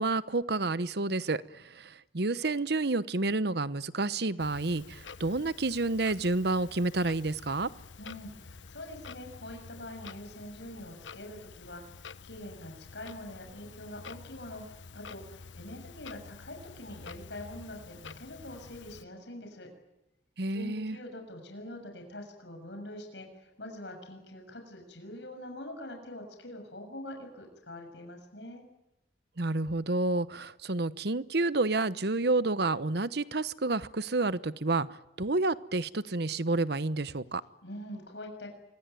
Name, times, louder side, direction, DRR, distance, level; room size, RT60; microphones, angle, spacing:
voice 1, 0.0-7.7 20.4-21.0 29.4-37.4, right 2 dB, 60° right, 16 dB, 1.0 m, -29 dB
Clock, 4.4-19.0, left 4 dB, 90° left, 1.1 m, -49 dB
voice 2, 8.0-19.7 20.5-28.7 37.6-38.5, left 1 dB, 70° left, 4 dB, 6.8 m, -44 dB
26.0 x 24.0 x 9.2 m, 0.93 s
head